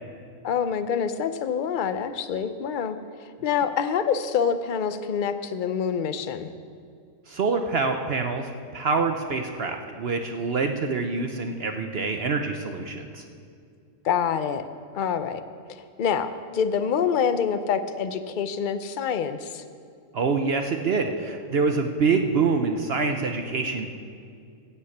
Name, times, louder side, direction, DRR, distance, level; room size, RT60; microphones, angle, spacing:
voice 1, 0.4-3.0 3.4-6.5 14.0-14.6 14.9-15.4 15.7-19.6, left 7 dB, 50° left, 11 dB, 0.6 m, -26 dB
voice 2, 7.3-13.2 20.1-23.9, right 4 dB, 55° right, 5 dB, 0.8 m, -26 dB
16.0 x 5.8 x 7.9 m, 2.4 s
omnidirectional pair, 1.4 m